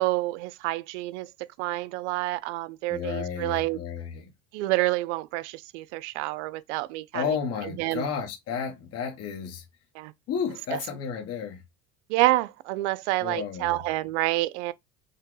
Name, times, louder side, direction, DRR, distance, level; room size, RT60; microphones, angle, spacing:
voice 1, 0.0-3.8 4.5-7.2 7.8-8.0 10.0-10.1 12.1-14.7, right 18 dB, 85° right, 0.6 m, -28 dB
voice 2, 2.9-4.3 7.1-9.6 10.3-11.6 13.2-13.8, left 7 dB, 45° left, 1.2 m, -32 dB
5.5 x 2.2 x 3.8 m
supercardioid pair, 115°, 34 cm